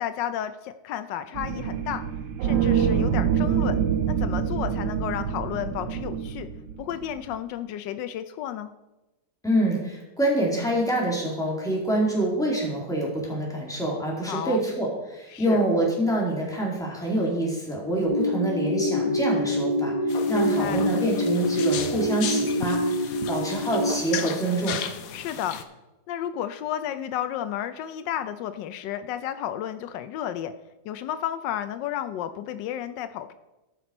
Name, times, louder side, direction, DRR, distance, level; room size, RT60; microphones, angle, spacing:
voice 1, 0.0-2.0 2.4-3.8 4.1-6.5 6.8-8.7 14.2-14.6 15.3-15.6 20.3-20.8 25.1-25.6 26.1-30.5 30.8-33.3, left 10 dB, 85° left, 12 dB, 1.3 m, -32 dB
sound 1, 1.4-7.4, right 8 dB, 75° right, 1.2 m, -26 dB
voice 2, 9.4-24.8, right 1 dB, ahead, -3 dB, 2.2 m, -26 dB
sound 2, 18.0-23.9, left 1 dB, 40° left, 0.5 m, -26 dB
sound 3, 20.1-25.6, left 8 dB, 65° left, 1.0 m, -35 dB
13.5 x 5.9 x 4.3 m, 1.0 s
omnidirectional pair, 1.9 m